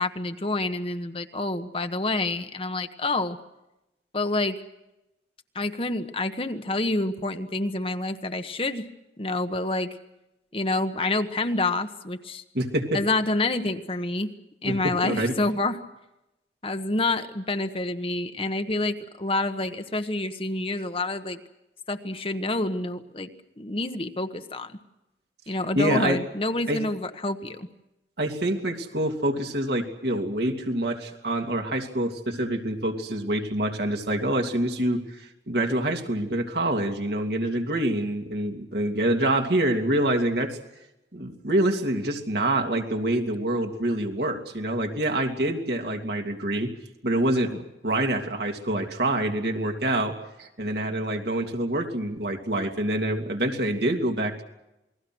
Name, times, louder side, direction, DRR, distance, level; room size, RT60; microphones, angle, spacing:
voice 1, 0.0-3.4 4.1-4.6 5.5-8.9 9.2-9.9 10.5-12.4 12.9-14.3 14.6-15.8 16.6-21.4 21.9-23.3 23.6-24.7 25.5-27.7, left 2 dB, 30° left, 8 dB, 1.2 m, -28 dB
voice 2, 12.5-13.0 14.6-15.3 25.7-26.2 26.7-26.8 28.2-40.6 41.1-46.7 47.0-54.4, right 1 dB, 65° right, 3 dB, 3.0 m, -26 dB
28.5 x 21.0 x 6.2 m, 0.93 s
head